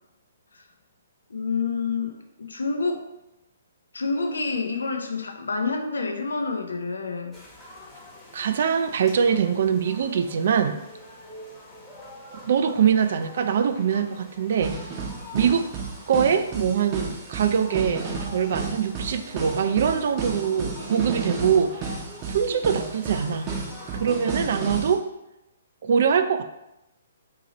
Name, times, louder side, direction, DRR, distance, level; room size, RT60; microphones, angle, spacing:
voice 1, 1.3-3.0 3.9-7.4, left 4 dB, 80° left, 4 dB, 0.5 m, -28 dB
sound 1, 7.3-24.4, left 1 dB, 10° left, 1.0 m, -44 dB
voice 2, 8.3-10.8 12.4-14.7 15.3-15.7 16.1-21.9 22.3-23.5 23.9-25.1 25.8-26.4, right 7 dB, 60° right, 9 dB, 0.3 m, -23 dB
sound 2, 12.3-12.4 14.6-24.9, right 4 dB, 30° right, 0.7 m, -33 dB
2.9 x 2.8 x 3.8 m, 0.91 s
hypercardioid pair, 135°, 0 cm